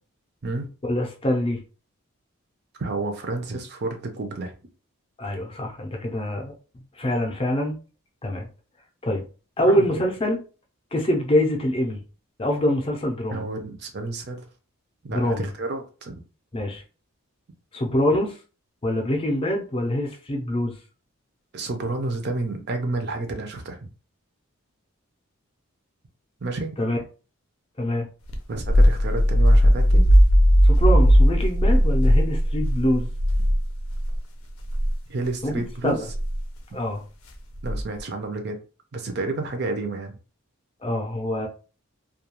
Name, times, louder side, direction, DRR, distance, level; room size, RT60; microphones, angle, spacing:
voice 1, 0.8-1.6 5.2-6.5 6.9-7.8 8.2-8.5 9.0-9.2 9.6-10.4 10.9-12.0 12.4-13.4 15.1-15.5 16.5-16.8 17.7-18.4 18.8-20.8 26.8-27.0 27.8-28.1 30.6-33.1 35.4-35.5 35.8-36.1 36.7-37.0 40.8-41.5, left 1 dB, 25° left, 0.5 m, -24 dB
voice 2, 2.8-4.5 9.7-10.0 13.3-14.5 15.0-16.2 21.5-23.8 26.4-26.8 28.5-30.0 35.1-36.0 37.6-38.6 38.9-40.1, right 2 dB, 50° right, 0.5 m, -30 dB
sound 1, 28.3-34.2 34.6-34.9 36.1-36.4 37.6-38.0, equal, 75° left, 0.5 m, -17 dB
2.3 x 2.2 x 2.9 m
head